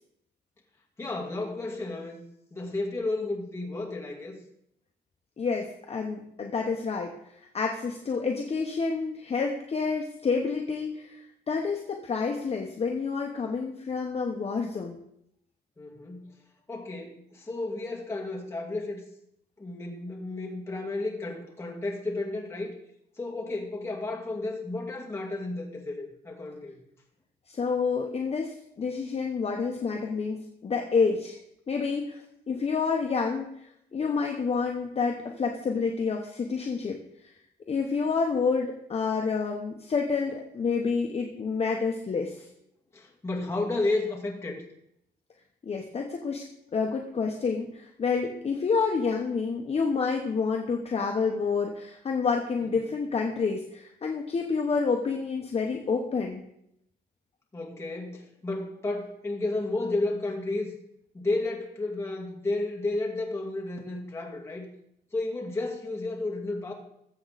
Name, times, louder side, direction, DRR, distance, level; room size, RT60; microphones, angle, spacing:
voice 1, 1.0-2.2 2.5-4.4 15.8-16.3 16.7-19.0 19.6-22.7 23.2-26.8 42.9-44.6 52.8-52.9 57.5-60.7 61.1-64.7 65.1-66.7, left 2 dB, 15° left, -2 dB, 2.4 m, -32 dB
voice 2, 5.4-15.0 27.5-31.4 31.7-37.3 37.7-42.4 45.6-46.4 46.7-56.4, left 5 dB, 35° left, 1 dB, 1.1 m, -29 dB
20.5 x 7.7 x 4.2 m, 0.77 s
wide cardioid pair, 165°, 18 cm